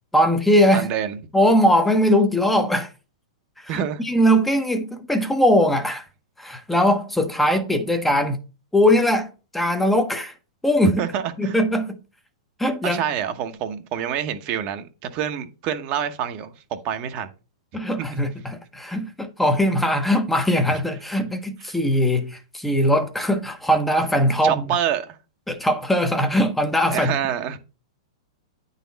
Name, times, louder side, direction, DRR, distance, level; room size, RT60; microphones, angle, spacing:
voice 1, 0.1-0.9 1.3-2.9 3.6-6.1 6.4-8.4 8.7-10.3 10.6-11.0 11.4-12.0 12.6-13.0 17.7-24.6 25.5-27.1, equal, 5° left, 0.8 m, -20 dB
voice 2, 0.7-1.2 3.7-4.0 11.0-11.6 12.8-17.3 18.0-18.2 21.6-21.7 24.4-25.2 26.9-27.6, right 9 dB, 40° right, 0.9 m, -27 dB
9.1 x 4.1 x 4.0 m
hypercardioid pair, 125°, 3 cm